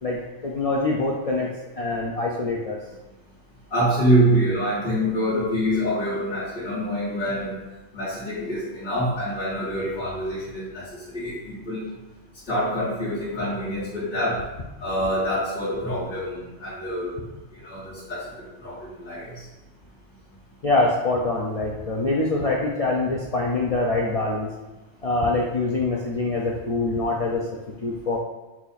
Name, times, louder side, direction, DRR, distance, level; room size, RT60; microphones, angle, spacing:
voice 1, 0.0-2.8 20.6-24.5 25.0-27.5 27.8-28.2, left 2 dB, 65° left, -3 dB, 0.3 m, -24 dB
voice 2, 3.7-7.6 7.9-11.8 12.5-14.4 14.8-17.1 17.5-18.3 18.6-19.4, equal, 50° left, -11 dB, 1.4 m, -25 dB
4.4 x 2.4 x 4.0 m, 1.1 s
omnidirectional pair, 1.3 m